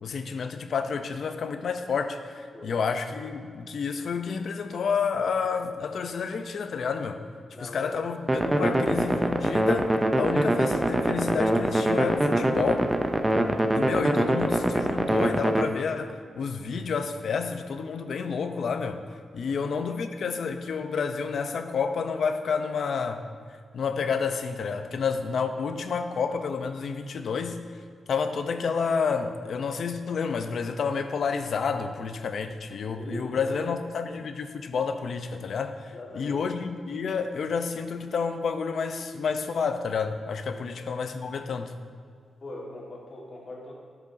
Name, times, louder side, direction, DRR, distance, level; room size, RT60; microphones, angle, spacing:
voice 1, 0.0-7.2 7.6-12.9 13.7-19.0 19.3-23.2 23.7-27.6 28.1-41.7, left 5 dB, 60° left, 8 dB, 0.5 m, -30 dB
voice 2, 2.5-2.9 7.5-8.0 19.5-19.6 32.9-33.7 35.9-36.4 40.5-40.7 42.4-43.7, left 1 dB, 40° left, -3 dB, 1.6 m, -40 dB
sound 1, 8.3-15.6, right 1 dB, 15° right, 0.5 m, -24 dB
13.0 x 7.0 x 2.6 m, 2.1 s
wide cardioid pair, 160°, 0 cm